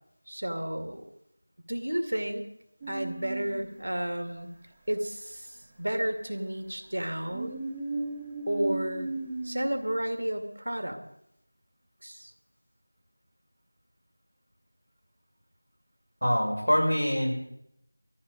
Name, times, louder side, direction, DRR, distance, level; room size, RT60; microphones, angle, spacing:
voice 1, 0.3-1.0 1.7-2.5 2.9-4.5 4.9-7.6 8.5-9.1 9.4-11.0 12.0-12.3, right 1 dB, 60° right, 6 dB, 2.2 m, -32 dB
sound 1, 2.8-3.9 7.0-10.2, right 2 dB, 10° right, 0.8 m, -36 dB
voice 2, 16.2-17.3, equal, 80° left, -1 dB, 6.2 m, -24 dB
17.5 x 14.0 x 5.2 m, 0.78 s
figure-of-eight pair, 175°, 0 cm